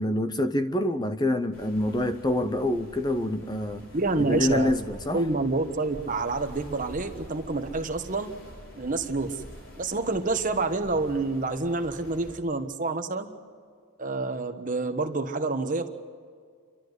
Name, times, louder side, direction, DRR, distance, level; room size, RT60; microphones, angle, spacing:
voice 1, 0.0-3.8 4.2-5.3, left 1 dB, 20° left, 0.7 m, -26 dB
sound 1, 1.5-12.4, equal, 60° left, 4.5 m, -46 dB
voice 2, 3.9-4.7 5.1-8.3 8.8-9.4 9.8-13.3 14.0-15.9, right 3 dB, 40° right, 1.3 m, -28 dB
29.5 x 13.0 x 8.1 m
head